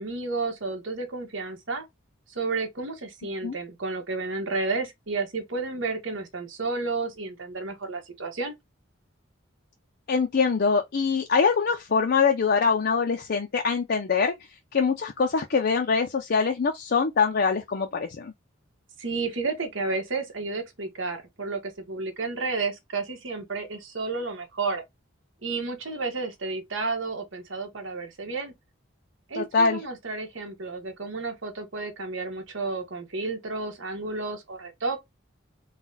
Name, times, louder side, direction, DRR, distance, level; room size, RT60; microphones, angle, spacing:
voice 1, 0.0-1.8 2.3-8.5 19.0-24.8 25.4-28.5 29.3-35.0, right 3 dB, 75° right, 1.3 m, -31 dB
voice 2, 10.1-14.3 14.7-18.3 29.3-29.8, left 5 dB, 55° left, 0.5 m, -23 dB
4.0 x 2.3 x 3.8 m
head